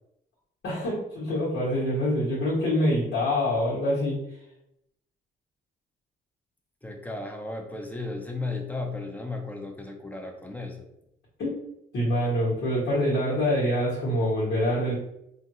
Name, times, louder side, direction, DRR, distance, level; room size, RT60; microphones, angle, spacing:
voice 1, 0.6-4.2 11.4-11.6 11.9-14.9, equal, 75° left, -8 dB, 1.5 m, -25 dB
voice 2, 6.8-10.9, left 3 dB, 10° left, 3 dB, 0.6 m, -35 dB
3.4 x 2.6 x 2.7 m, 0.82 s
cardioid pair, 90°, 20 cm